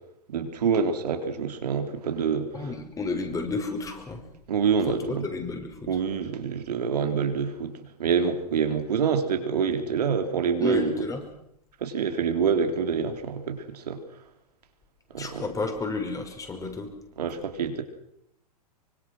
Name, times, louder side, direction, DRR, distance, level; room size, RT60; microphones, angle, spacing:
voice 1, 0.3-2.5 4.5-5.3 5.9-7.7 8.0-10.9 11.8-14.0 15.1-15.4 17.2-17.8, right 6 dB, 70° right, 6 dB, 3.7 m, -26 dB
voice 2, 2.5-4.2 4.9-6.0 10.6-11.2 15.2-16.9, left 3 dB, 15° left, 5 dB, 5.2 m, -31 dB
25.0 x 24.5 x 6.4 m, 0.78 s
hypercardioid pair, 105°, 21 cm